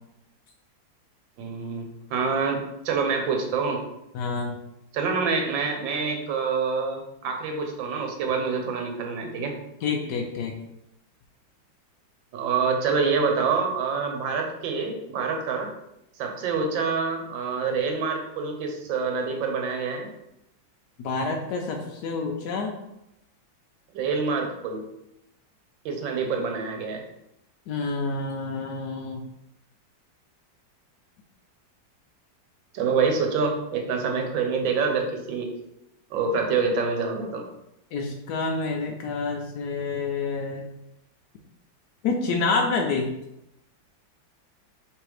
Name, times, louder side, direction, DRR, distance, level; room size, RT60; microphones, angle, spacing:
voice 1, 1.4-3.8 4.9-9.6 12.3-15.7 16.2-20.1 23.9-24.8 25.8-27.0 32.7-35.5 36.1-37.5, right 5 dB, 75° right, 3 dB, 1.5 m, -26 dB
voice 2, 4.1-4.6 9.8-10.5 21.0-22.8 27.7-29.2 37.9-40.7 42.0-43.1, left 4 dB, 75° left, 1 dB, 0.9 m, -28 dB
3.5 x 3.2 x 4.8 m, 0.86 s
omnidirectional pair, 2.1 m